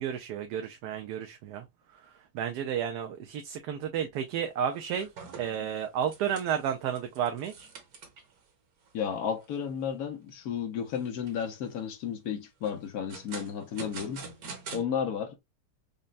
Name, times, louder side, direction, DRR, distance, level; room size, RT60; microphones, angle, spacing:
voice 1, 0.0-1.6 1.9-5.1 5.3-7.7, right 8 dB, 85° right, 1.1 m, -32 dB
sound 1, 4.2-4.3 4.7-8.4 8.9-9.0 9.4-9.5 10.0-10.4 11.0-11.6 12.6-14.8, right 4 dB, 65° right, 1.5 m, -45 dB
voice 2, 8.9-14.3 14.7-15.4, left 8 dB, 70° left, 1.2 m, -33 dB
5.2 x 2.2 x 2.4 m
omnidirectional pair, 1.7 m